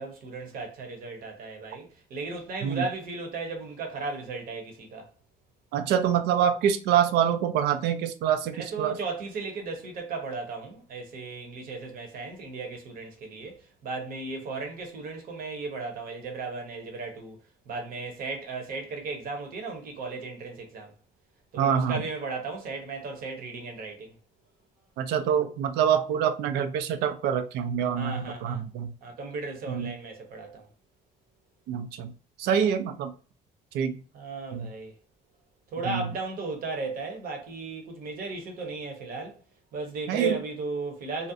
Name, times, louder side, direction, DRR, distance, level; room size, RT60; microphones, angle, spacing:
voice 1, 0.0-5.1 8.5-17.4 17.7-20.9 21.5-24.1 28.0-28.6 29.0-30.6 34.1-34.9 35.7-39.4 39.7-41.3, right 3 dB, 60° right, 0.8 m, -35 dB
voice 2, 5.7-9.0 21.6-22.0 25.0-28.9 29.7-29.9 31.7-32.1 32.4-33.1 33.7-34.0 34.5-34.7 35.8-36.0 40.1-40.4, right 8 dB, 80° right, 0.4 m, -26 dB
2.5 x 2.0 x 2.6 m
cardioid pair, 110°, 17 cm